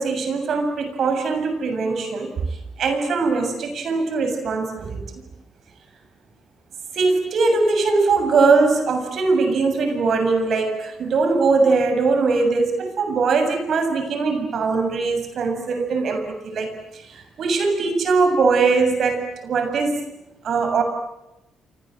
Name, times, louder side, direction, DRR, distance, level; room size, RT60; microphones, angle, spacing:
voice 1, 0.0-2.3 2.8-5.0 6.9-16.7 17.0-20.0 20.4-20.8, right 4 dB, 60° right, 7 dB, 7.2 m, -21 dB
30.0 x 25.5 x 7.8 m, 0.92 s
cardioid pair, 90°, 0 cm